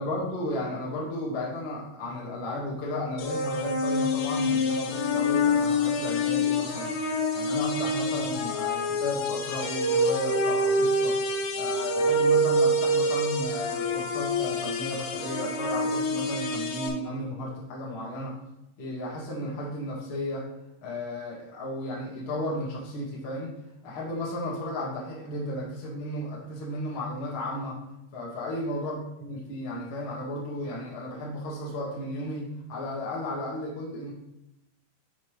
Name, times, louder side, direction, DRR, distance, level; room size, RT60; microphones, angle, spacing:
voice 1, 0.0-7.0 7.3-11.2 11.5-18.4 18.8-20.5 20.8-23.5 23.8-27.8 28.1-34.1, left 1 dB, 60° left, -4 dB, 1.3 m, -34 dB
sound 1, 3.2-16.9, left 1 dB, 85° left, 3.4 m, -26 dB
6.8 x 6.1 x 3.3 m, 0.87 s
omnidirectional pair, 5.6 m